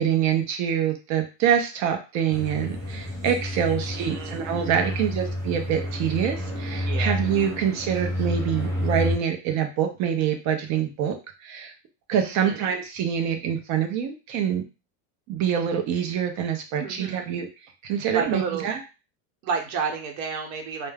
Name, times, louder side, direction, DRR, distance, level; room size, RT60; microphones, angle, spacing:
voice 1, 0.0-11.7 12.1-14.6 15.3-17.5 17.8-18.8, right 8 dB, 40° right, 5 dB, 0.4 m, -25 dB
sound 1, 2.3-9.2, left 1 dB, 5° left, 0.6 m, -30 dB
voice 2, 3.6-5.1 6.7-7.2 12.2-12.7 16.8-17.3 18.1-18.7 19.4-20.9, right 5 dB, 65° right, 2 dB, 0.9 m, -32 dB
2.3 x 2.1 x 3.2 m, 0.31 s
supercardioid pair, 140°, 50 cm